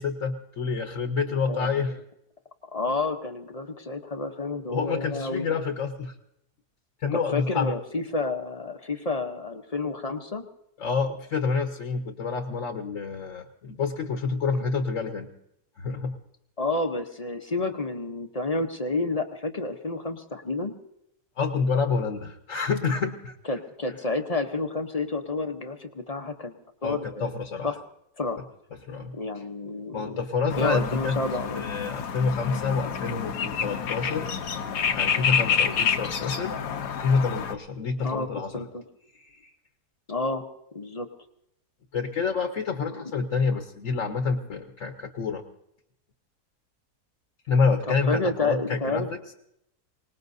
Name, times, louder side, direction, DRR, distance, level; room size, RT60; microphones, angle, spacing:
voice 1, 0.0-2.0 4.7-6.1 7.0-7.7 10.8-15.3 15.8-16.2 21.4-23.4 26.8-27.7 28.9-29.1 29.9-31.2 31.5-34.3 35.0-36.6 37.0-38.7 39.1-39.4 41.9-45.4 47.5-49.1, left 5 dB, 55° left, 5 dB, 1.2 m, -28 dB
voice 2, 1.3-1.7 2.7-5.5 7.1-10.4 16.6-20.7 23.5-26.5 26.8-27.3 27.6-27.7 28.2-28.4 29.1-30.2 30.6-31.7 38.0-38.3 38.5-38.8 40.1-40.4 40.7-41.1 42.9-43.1 47.9-49.1, left 3 dB, 30° left, 6 dB, 0.7 m, -30 dB
sound 1, 30.5-37.5, left 7 dB, 85° left, 1.5 m, -28 dB
25.0 x 19.5 x 2.7 m, 0.78 s
omnidirectional pair, 1.7 m